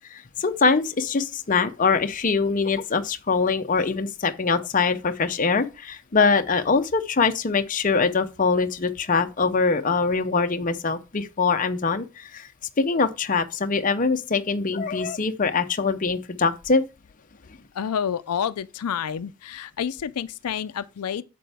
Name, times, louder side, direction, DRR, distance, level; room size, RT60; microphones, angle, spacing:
voice 1, 0.1-12.5 12.8-16.8, left 4 dB, 35° left, 0.6 m, -23 dB
voice 2, 17.7-21.2, left 8 dB, 85° left, 0.4 m, -29 dB
8.5 x 6.8 x 3.4 m
head